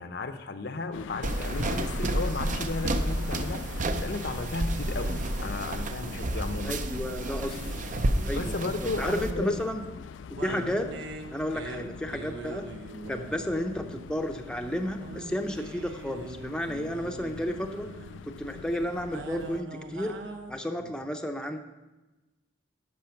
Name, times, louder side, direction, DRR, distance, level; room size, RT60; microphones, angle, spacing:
voice 1, 0.0-7.0 8.3-9.6 10.5-10.7 20.8-20.9, left 3 dB, 65° left, 9 dB, 0.7 m, -34 dB
sound 1, 0.9-19.6, left 7 dB, 90° left, 0.3 m, -44 dB
sound 2, 1.2-9.3, right 1 dB, 45° right, 0.6 m, -30 dB
sound 3, 4.8-20.5, right 2 dB, 85° right, 1.0 m, -44 dB
voice 2, 6.6-7.6 8.2-8.6 9.0-9.8 10.4-10.9 11.3-12.6 13.1-17.9 18.3-20.1 20.5-21.6, equal, 5° left, 4 dB, 0.6 m, -32 dB
10.5 x 6.2 x 5.8 m, 1.1 s
head